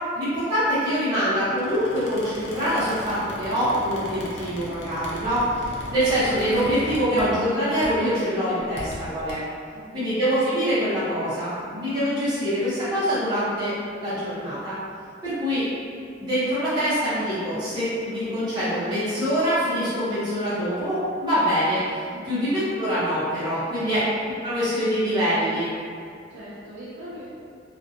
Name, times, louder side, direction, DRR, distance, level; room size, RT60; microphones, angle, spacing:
voice 1, 0.1-9.4 9.9-13.7 14.0-14.8 15.2-15.6 16.2-22.0 22.2-24.0 24.4-25.7, equal, 25° right, -14 dB, 0.7 m, -24 dB
Squeak, 1.4-7.5 7.8-8.1 8.6-9.3, left 1 dB, 65° left, 0.5 m, -37 dB
voice 2, 23.5-23.9 26.3-27.3, equal, 65° right, -11 dB, 0.5 m, -41 dB
2.5 x 2.1 x 2.5 m, 2.4 s
head